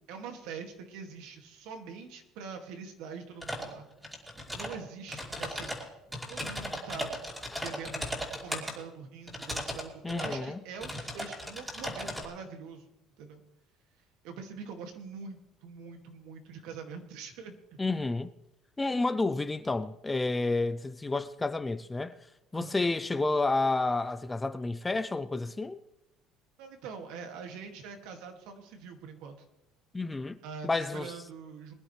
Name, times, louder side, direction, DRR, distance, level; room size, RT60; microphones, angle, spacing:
voice 1, 0.1-3.9 4.5-5.8 6.3-7.2 7.6-12.8 13.2-13.4 14.2-17.8 22.5-22.8 26.6-29.4 30.4-31.7, right 5 dB, 75° right, 2.1 m, -44 dB
sound 1, 3.4-3.7 4.0-4.8 5.1-8.7 9.3-9.8 10.1-10.4 10.8-12.2, equal, 5° right, 2.7 m, -36 dB
voice 2, 10.0-10.6 17.8-18.3 18.8-22.2 22.5-25.8 29.9-30.4 30.6-31.1, left 3 dB, 10° left, 0.5 m, -30 dB
21.5 x 11.0 x 3.2 m
cardioid pair, 150°, 0 cm